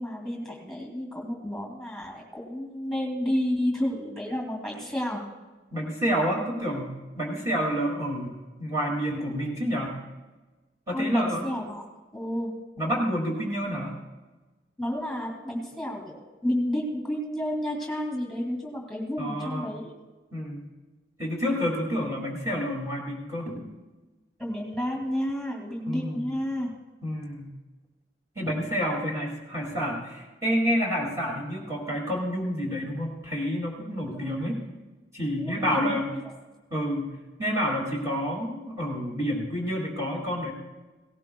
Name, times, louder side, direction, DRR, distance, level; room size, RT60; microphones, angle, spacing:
voice 1, 0.0-5.2 10.9-11.8 12.1-12.5 14.8-19.9 24.4-26.7 34.1-34.5 35.4-36.2, equal, 5° left, -1 dB, 2.6 m, -31 dB
voice 2, 5.7-10.0 10.9-11.5 12.8-14.0 19.2-19.7 20.3-20.7 21.2-23.6 25.9-26.3 27.0-27.5 28.4-34.6 35.1-36.1 36.7-37.1 37.4-40.5, equal, 20° right, -4 dB, 2.3 m, -29 dB
18.0 x 17.5 x 2.3 m, 1.2 s
head